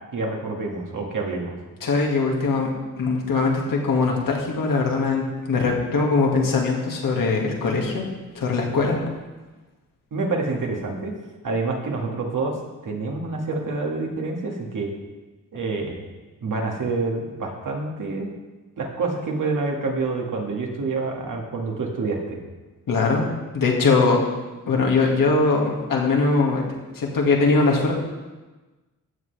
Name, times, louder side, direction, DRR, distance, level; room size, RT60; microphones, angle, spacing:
voice 1, 0.1-1.6 10.1-11.1 11.4-12.6 12.8-14.9 15.5-16.0 16.4-18.3 18.8-22.4, right 3 dB, 65° right, 0 dB, 2.0 m, -27 dB
voice 2, 1.8-2.7 3.0-8.0 8.3-9.0 22.9-23.3 23.5-24.2 24.7-26.6 26.9-28.0, left 3 dB, 70° left, -1 dB, 2.1 m, -21 dB
13.5 x 7.7 x 3.4 m, 1.2 s
cardioid pair, 85°, 34 cm